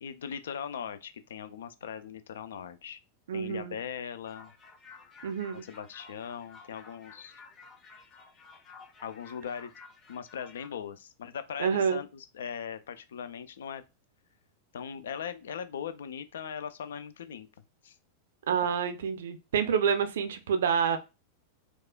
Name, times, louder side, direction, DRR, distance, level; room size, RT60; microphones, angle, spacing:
voice 1, 0.0-3.0 3.3-4.5 5.6-7.3 9.0-9.7 10.1-13.8 14.7-17.5 17.8-18.0 19.6-19.8, left 7 dB, 65° left, 0.4 m, -39 dB
voice 2, 3.3-3.8 5.2-5.6 11.6-12.0 18.5-21.0, right 7 dB, 60° right, 0.5 m, -28 dB
sound 1, 4.3-10.7, left 4 dB, 25° left, 0.8 m, -53 dB
4.6 x 2.3 x 2.2 m
figure-of-eight pair, 90°, 0 cm